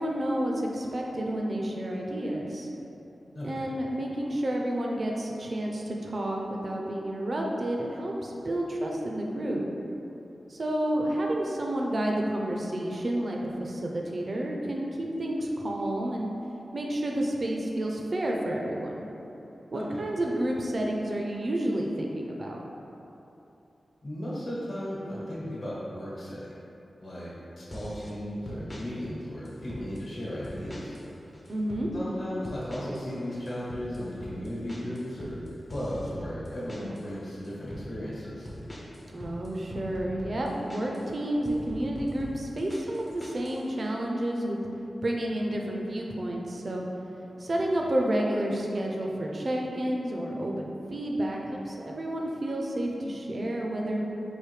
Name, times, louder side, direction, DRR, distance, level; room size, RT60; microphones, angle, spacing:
voice 1, 0.0-2.7 3.4-9.6 10.5-16.3 16.7-19.1 19.7-22.6 31.5-31.9 39.1-44.6 45.0-46.8 47.4-54.0, right 1 dB, 40° right, -1 dB, 0.4 m, -30 dB
voice 2, 3.3-3.6 19.7-20.0 24.0-26.5 27.0-27.3 27.6-30.9 31.9-35.4 35.7-38.5 47.5-47.6, equal, 55° left, -8 dB, 1.1 m, -35 dB
sound 1, 27.7-28.1 28.5-28.9 29.5-30.1 30.4-31.1 31.3-31.9 32.4-33.1 33.3-37.1 37.4-37.9 38.5-41.1 41.4-43.6, equal, 20° left, 0.5 m, -42 dB
4.8 x 2.6 x 3.2 m, 2.9 s
wide cardioid pair, 140°, 0 cm